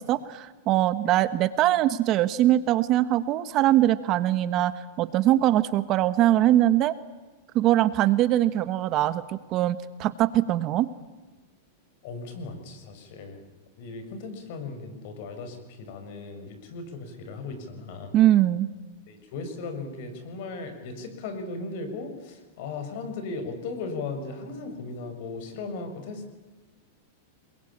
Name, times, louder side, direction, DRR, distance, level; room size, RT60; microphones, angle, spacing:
voice 1, 0.0-4.7 5.0-6.9 7.5-10.9 18.1-18.7, right 13 dB, 35° right, 14 dB, 1.2 m, -22 dB
voice 2, 12.0-13.4 13.8-18.1 19.1-26.4, left 3 dB, 55° left, 7 dB, 6.5 m, -37 dB
27.0 x 22.0 x 8.8 m, 1.3 s
supercardioid pair, 145°, 0 cm